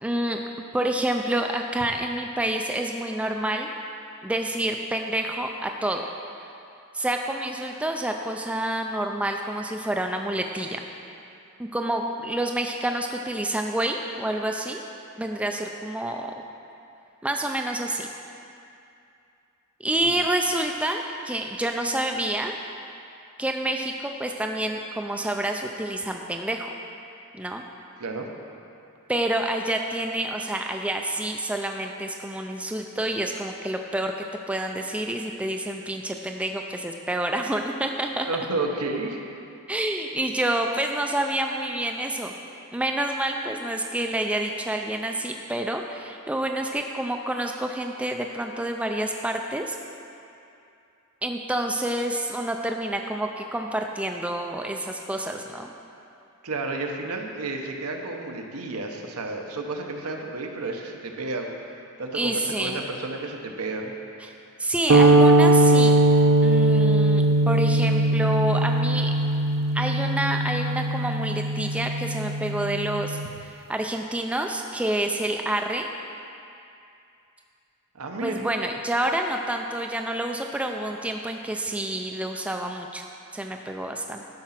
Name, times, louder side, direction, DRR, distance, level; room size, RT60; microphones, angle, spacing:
voice 1, 0.0-0.4 0.7-3.7 4.2-6.1 6.9-10.8 11.6-14.8 15.2-16.3 17.2-18.1 19.8-22.6 23.4-26.7 27.4-27.6 29.1-34.1 34.5-38.3 39.7-42.3 42.7-49.8 51.2-55.7 62.1-62.8 64.2-64.3 64.6-66.0 66.4-69.1 69.7-73.2 73.7-75.9 78.2-83.1 83.3-84.2, right 1 dB, 5° right, 3 dB, 0.3 m, -28 dB
voice 2, 38.3-39.2 56.4-61.5 62.0-64.0 77.9-78.5, right 3 dB, 80° right, 2 dB, 0.9 m, -31 dB
sound 1, 64.9-73.3, right 1 dB, 60° right, 0.5 m, -20 dB
12.0 x 4.9 x 5.7 m, 2.6 s
head